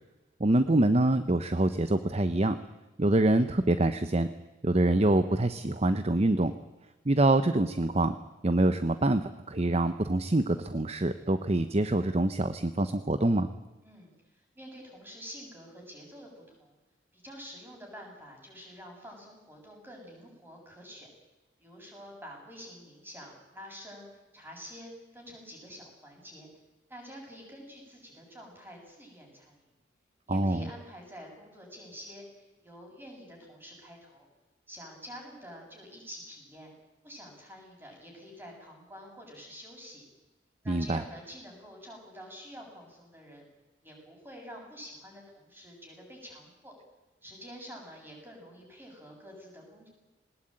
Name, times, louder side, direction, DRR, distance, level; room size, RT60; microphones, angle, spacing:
voice 1, 0.4-2.6 3.0-4.3 4.6-6.5 7.1-8.2 8.4-13.5 30.3-30.7 40.7-41.0, right 2 dB, 30° right, 11 dB, 0.8 m, -25 dB
voice 2, 13.8-16.8 17.1-21.1 21.6-26.5 26.9-29.6 30.3-34.3 34.7-36.7 37.0-40.0 40.6-43.5 43.8-46.7 47.2-49.9, equal, 10° right, 0 dB, 7.5 m, -48 dB
20.0 x 19.5 x 8.9 m, 1.1 s
head